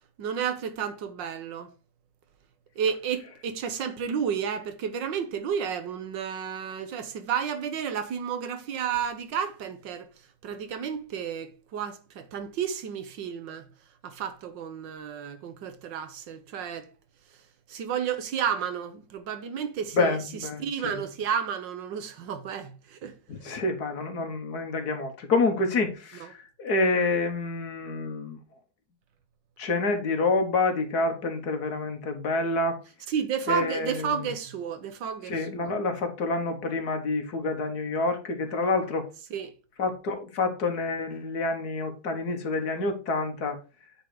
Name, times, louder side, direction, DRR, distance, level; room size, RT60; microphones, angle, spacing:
voice 1, 0.2-1.7 2.8-10.1 10.4-13.7 14.0-16.9 17.7-20.2 20.6-23.1 23.4-23.5 33.1-35.7 39.3-39.5, right 7 dB, 90° right, 1.7 m, -32 dB
voice 2, 19.9-21.0 23.3-28.4 29.6-32.8 33.5-34.3 35.3-39.1 39.8-43.6, left 3 dB, 60° left, 1.9 m, -28 dB
8.7 x 4.0 x 4.9 m
omnidirectional pair, 1.9 m